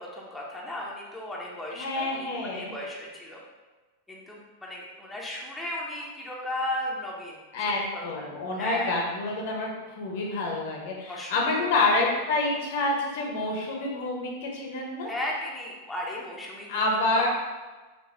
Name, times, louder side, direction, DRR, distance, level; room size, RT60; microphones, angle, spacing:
voice 1, 0.0-3.4 4.1-7.7 7.9-8.2 8.6-9.0 11.1-12.0 15.1-16.8 17.1-17.3, left 1 dB, 5° left, -4 dB, 0.8 m, -35 dB
voice 2, 1.7-2.7 7.5-15.1 16.7-17.3, left 2 dB, 55° left, -1 dB, 0.9 m, -28 dB
5.2 x 2.5 x 3.6 m, 1.3 s
figure-of-eight pair, 90°, 0 cm